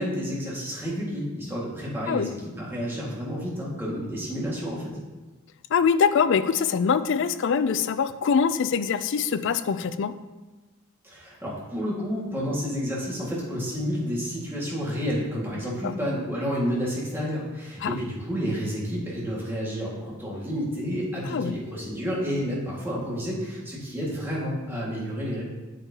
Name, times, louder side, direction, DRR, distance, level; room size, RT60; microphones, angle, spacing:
voice 1, 0.0-4.9 11.0-25.4, equal, 10° right, -6 dB, 1.8 m, -30 dB
voice 2, 5.7-10.1 15.8-15.9 17.8-17.9 21.3-21.6, left 6 dB, 60° left, 13 dB, 0.4 m, -23 dB
8.3 x 6.9 x 2.8 m, 1.2 s
head